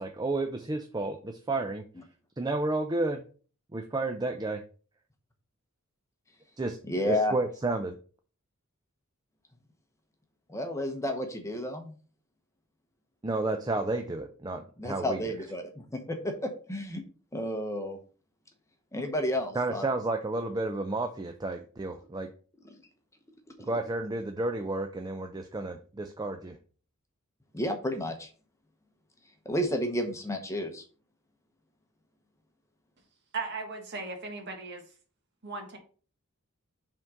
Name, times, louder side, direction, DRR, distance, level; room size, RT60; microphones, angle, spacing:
voice 1, 0.0-1.8 2.4-3.2 3.7-4.6 6.6-6.8 7.1-8.0 13.2-15.2 19.5-22.3 23.6-26.6, right 2 dB, 20° right, 6 dB, 0.4 m, -31 dB
voice 2, 6.9-7.3 10.5-12.0 14.8-17.0 17.3-18.0 18.9-19.8 23.6-23.7 27.5-28.3 29.4-30.8, equal, 15° left, 5 dB, 0.9 m, -31 dB
voice 3, 33.3-34.8 35.4-35.8, right 4 dB, 55° right, 3 dB, 1.6 m, -37 dB
5.4 x 3.6 x 5.3 m, 0.39 s
head